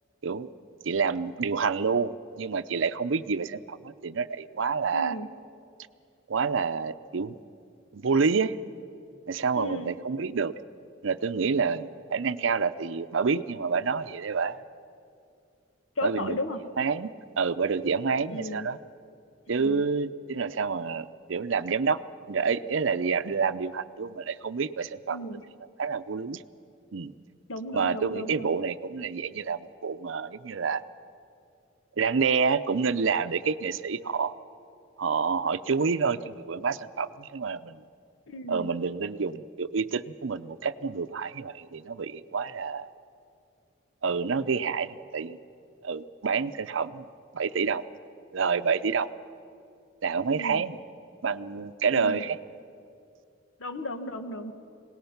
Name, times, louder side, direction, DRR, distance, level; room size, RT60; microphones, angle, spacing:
voice 1, 0.8-5.2 6.3-7.4 7.9-8.5 9.3-10.5 11.0-14.6 16.0-16.4 16.8-18.8 19.5-22.0 22.3-25.2 25.8-26.4 26.9-27.1 27.7-30.8 32.0-34.3 35.0-37.8 38.5-42.9 44.0-45.4 45.8-47.1 47.3-47.8 48.3-49.1 50.0-50.8 51.2-52.4, right 5 dB, 75° right, 13 dB, 0.6 m, -28 dB
voice 2, 4.9-5.3 9.6-9.9 16.0-16.6 18.3-18.7 19.6-19.8 25.1-25.4 27.5-28.5 38.3-38.7 50.3-50.6 51.9-52.3 53.6-54.5, left 1 dB, 85° left, 8 dB, 1.3 m, -35 dB
26.0 x 18.5 x 5.9 m, 2.5 s
head